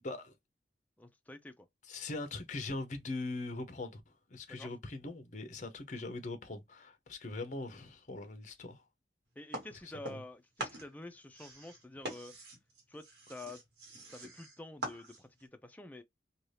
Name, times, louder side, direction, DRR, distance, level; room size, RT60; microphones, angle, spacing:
voice 1, 1.0-1.7 4.5-4.7 9.4-12.3 12.9-13.6 14.1-16.0, left 2 dB, 10° left, 0.4 m, -49 dB
voice 2, 1.9-8.8 10.1-10.2, left 2 dB, 45° left, 0.7 m, -41 dB
sound 1, 9.5-10.3 10.6-15.4, right 1 dB, 75° right, 1.2 m, -44 dB
2.7 x 2.3 x 3.2 m
head